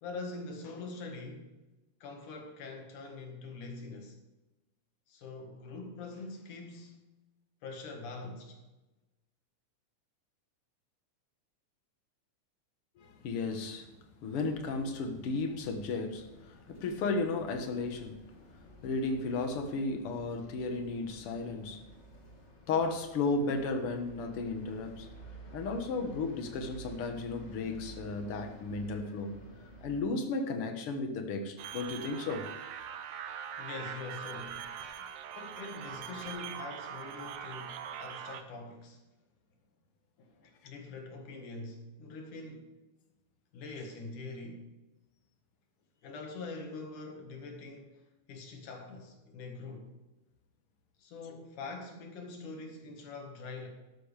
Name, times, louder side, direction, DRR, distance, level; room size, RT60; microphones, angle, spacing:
voice 1, 0.0-1.5 2.0-4.2 5.1-7.0 7.6-8.6 33.6-34.7 35.3-39.0 40.2-42.7 43.5-44.7 46.0-49.9 51.0-53.7, left 3 dB, 85° left, 3.3 m, -44 dB
voice 2, 13.0-13.9 14.2-18.2 18.5-21.9 22.7-25.1 25.5-29.4 29.8-32.5, left 3 dB, 55° left, 2.0 m, -34 dB
sound 1, 14.4-30.0, right 2 dB, 25° left, 1.7 m, -52 dB
sound 2, 31.6-38.4, right 8 dB, 70° right, 1.6 m, -42 dB
13.0 x 12.0 x 3.5 m
omnidirectional pair, 3.5 m